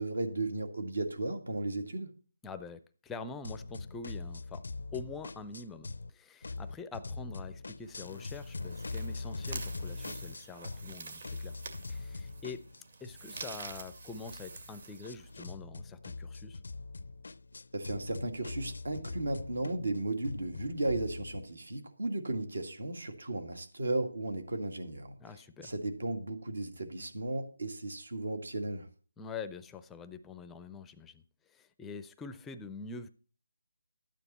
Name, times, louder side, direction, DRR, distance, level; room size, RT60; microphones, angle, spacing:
voice 1, 0.0-2.1 17.7-25.1 25.6-28.9, right 2 dB, 80° right, 2.2 m, -35 dB
voice 2, 2.4-4.6 4.9-11.6 11.9-12.7 13.0-16.6 25.2-25.7 29.2-31.2 31.5-33.1, left 4 dB, 5° left, 0.5 m, -45 dB
sound 1, 3.4-6.1 6.4-11.0 11.2-21.4, left 3 dB, 70° left, 0.5 m, -42 dB
sound 2, 7.8-15.5, right 4 dB, 60° right, 2.1 m, -48 dB
12.0 x 9.1 x 4.2 m
figure-of-eight pair, 165°, 0 cm